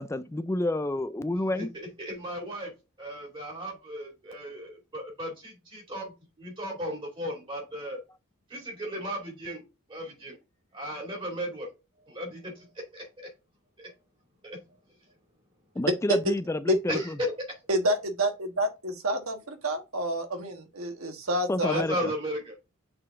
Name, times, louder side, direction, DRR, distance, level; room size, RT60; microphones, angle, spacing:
voice 1, 0.0-1.7 15.8-17.2 21.5-22.1, left 2 dB, 15° left, 0.3 m, -29 dB
voice 2, 2.0-2.7 3.0-8.0 8.5-9.6 9.9-10.4 10.7-11.7 12.0-13.3 13.8-13.9 14.4-14.6 16.9-17.3 21.6-22.6, equal, 25° right, 2.4 m, -35 dB
voice 3, 17.7-21.8, right 1 dB, 90° right, 1.4 m, -28 dB
6.6 x 4.0 x 3.6 m
head